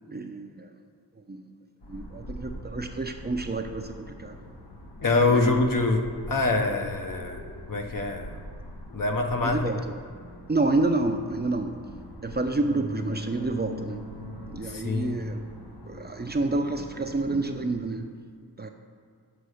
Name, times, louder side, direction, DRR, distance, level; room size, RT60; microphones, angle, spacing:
voice 1, 0.1-0.7 1.3-1.4 1.9-4.4 5.3-5.6 9.4-9.9 10.5-11.8 12.2-14.0 14.5-15.4 15.9-18.1 18.6-18.7, right 2 dB, 25° right, 5 dB, 0.6 m, -29 dB
sound 1, 1.8-17.6, left 1 dB, 85° left, 1.3 m, -42 dB
voice 2, 5.0-7.4 7.7-8.3 8.9-9.8 14.7-15.2, left 3 dB, 55° left, 3 dB, 0.9 m, -25 dB
6.9 x 4.1 x 6.4 m, 2.2 s
cardioid pair, 50°, 39 cm